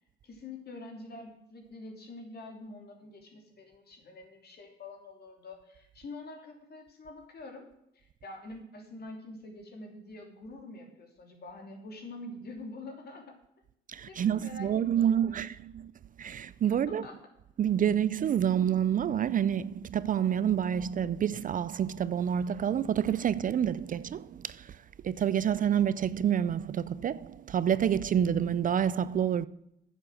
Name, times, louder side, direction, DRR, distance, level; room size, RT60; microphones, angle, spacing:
voice 1, 0.2-7.6 7.9-13.4 14.1-15.4 16.9-17.2, left 2 dB, 55° left, 3.0 m, -46 dB
voice 2, 13.9-15.9 16.2-17.0 17.6-29.5, right 9 dB, 45° right, 0.4 m, -28 dB
9.6 x 7.6 x 6.4 m
cardioid pair, 90°, 20 cm